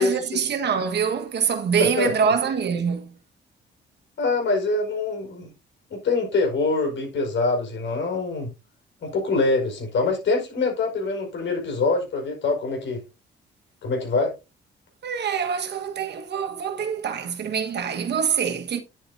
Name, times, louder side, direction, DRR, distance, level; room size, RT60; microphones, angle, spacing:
voice 1, 0.0-3.1 15.0-18.8, right 6 dB, 60° right, 1.5 m, -25 dB
voice 2, 1.8-2.3 4.2-5.5 5.9-8.5 9.0-13.0 13.8-14.3, left 3 dB, 70° left, 5.1 m, -24 dB
9.9 x 7.9 x 2.7 m
cardioid pair, 90°, 20 cm